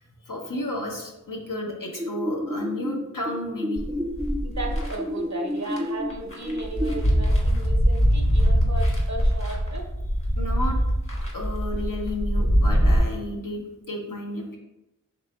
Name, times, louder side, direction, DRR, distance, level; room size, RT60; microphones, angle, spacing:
voice 1, 0.0-3.9 10.4-10.8 11.3-14.6, left 1 dB, 70° left, 0 dB, 1.0 m, -32 dB
sound 1, 2.0-7.0, equal, 10° right, 0.5 m, -31 dB
sound 2, 3.8-4.9 5.6-5.8 6.1-13.0, equal, 40° left, 1.2 m, -22 dB
voice 2, 4.4-9.8, right 2 dB, 55° right, 2 dB, 0.8 m, -35 dB
3.6 x 3.2 x 4.2 m, 0.93 s
wide cardioid pair, 45°, 34 cm